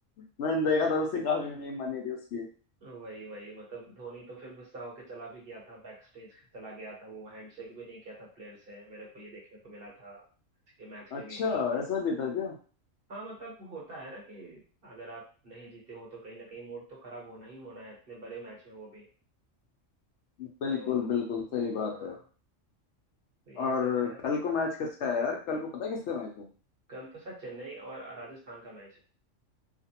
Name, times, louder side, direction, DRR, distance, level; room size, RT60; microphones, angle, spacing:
voice 1, 0.4-2.4 11.1-12.5 20.4-22.2 23.6-26.5, left 5 dB, 70° left, 0 dB, 0.9 m, -30 dB
voice 2, 2.8-10.2 10.8-11.9 13.1-19.1 20.7-21.1 21.5-22.2 23.5-24.2 26.9-29.0, right 2 dB, 50° right, -4 dB, 1.2 m, -45 dB
2.5 x 2.4 x 2.8 m, 0.39 s
omnidirectional pair, 1.3 m